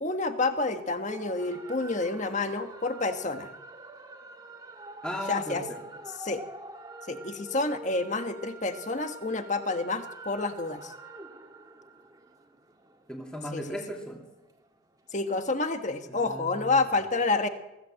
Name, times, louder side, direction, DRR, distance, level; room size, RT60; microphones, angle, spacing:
voice 1, 0.0-3.5 5.3-5.6 6.2-6.4 7.1-10.9 13.5-13.6 15.1-17.5, left 3 dB, 35° left, 7 dB, 1.5 m, -29 dB
sound 1, 1.1-15.6, right 2 dB, 20° right, 2.0 m, -46 dB
voice 2, 5.0-5.8 13.1-14.2 16.1-16.7, equal, 5° left, 0 dB, 2.7 m, -37 dB
24.0 x 16.5 x 7.7 m, 1.0 s
head